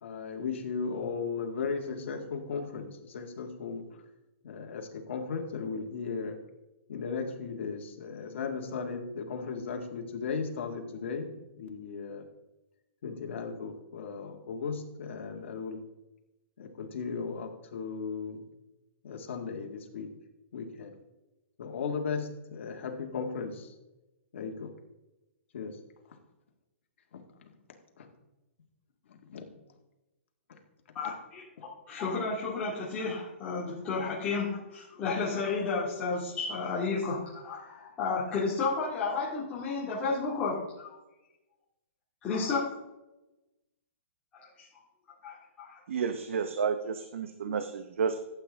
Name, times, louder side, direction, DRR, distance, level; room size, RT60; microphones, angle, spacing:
voice 1, 0.0-3.8 4.4-6.4 6.9-11.3 11.6-12.2 13.0-15.9 16.6-18.4 19.0-20.1 20.5-21.0 21.6-23.7 24.3-24.7 25.5-25.8 26.1-26.2 27.1-27.2 28.0-28.1 29.1-29.4, left 5 dB, 60° left, 3 dB, 2.0 m, -36 dB
voice 2, 30.9-40.9 42.2-42.7 44.3-44.6 45.2-45.8, left 4 dB, 15° left, -9 dB, 2.2 m, -32 dB
voice 3, 45.9-48.2, right 6 dB, 70° right, 9 dB, 0.8 m, -31 dB
14.5 x 8.4 x 3.6 m, 1.0 s
hypercardioid pair, 170°, 7 cm